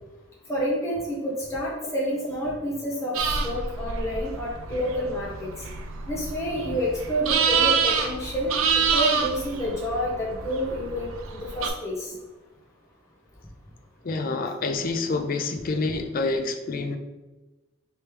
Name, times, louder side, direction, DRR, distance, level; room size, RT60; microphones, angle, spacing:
voice 1, 0.5-5.5 6.1-12.1, equal, 15° left, -5 dB, 0.9 m, -29 dB
sound 1, 3.1-11.7, right 6 dB, 90° right, 0.5 m, -27 dB
voice 2, 14.0-17.0, left 3 dB, 45° left, 6 dB, 0.4 m, -27 dB
3.4 x 3.1 x 4.5 m, 1.1 s
head